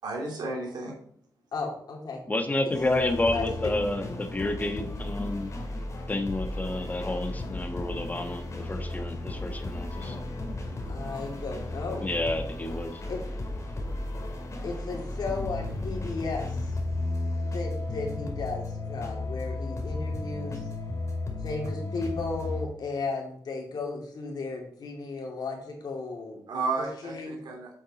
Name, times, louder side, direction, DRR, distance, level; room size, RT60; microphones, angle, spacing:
voice 1, 0.0-1.0 26.5-27.8, right 3 dB, 80° right, 1 dB, 2.9 m, -32 dB
voice 2, 1.5-2.2 2.6-3.5 10.9-12.1 13.1-13.2 14.6-16.8 17.5-20.7 21.4-26.4 27.0-27.4, left 3 dB, 70° left, 0 dB, 2.7 m, -35 dB
voice 3, 2.3-5.5 6.1-10.2 12.0-13.0, left 2 dB, 20° left, 6 dB, 1.4 m, -30 dB
sound 1, 2.7-22.7, left 2 dB, 45° left, 2.1 m, -34 dB
7.7 x 7.5 x 4.2 m, 0.62 s
wide cardioid pair, 105°, 7 cm